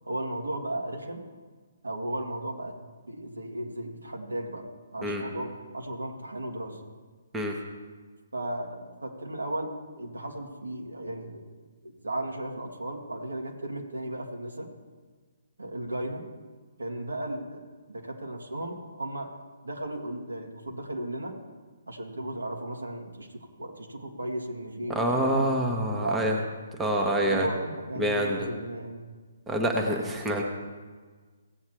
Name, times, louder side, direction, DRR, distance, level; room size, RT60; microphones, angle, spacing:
voice 1, 0.0-1.2 1.8-2.7 3.1-4.7 4.9-6.8 8.3-11.4 11.8-14.7 15.6-16.3 16.8-19.3 19.6-21.4 21.9-25.5 26.0-26.4 27.2-29.0, right 1 dB, 75° right, 1 dB, 2.0 m, -35 dB
voice 2, 24.9-26.4 26.8-27.5 28.0-28.4 29.5-30.4, equal, 10° right, 1 dB, 1.1 m, -26 dB
16.5 x 8.5 x 3.1 m, 1.4 s
figure-of-eight pair, 130°, 0 cm